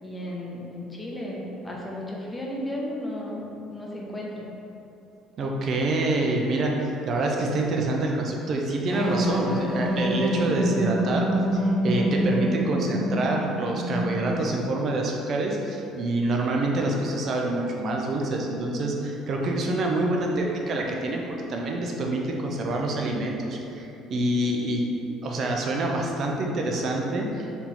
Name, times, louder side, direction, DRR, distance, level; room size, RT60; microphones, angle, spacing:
voice 1, 0.0-4.4, left 1 dB, 15° left, -3 dB, 0.8 m, -34 dB
voice 2, 5.4-6.7 7.0-21.2 21.5-24.9 25.2-27.5, right 2 dB, 50° right, 0 dB, 0.6 m, -26 dB
sound 1, 8.9-14.5, equal, 20° right, 1.3 m, -26 dB
3.6 x 3.0 x 4.1 m, 2.9 s
supercardioid pair, 90°, 0 cm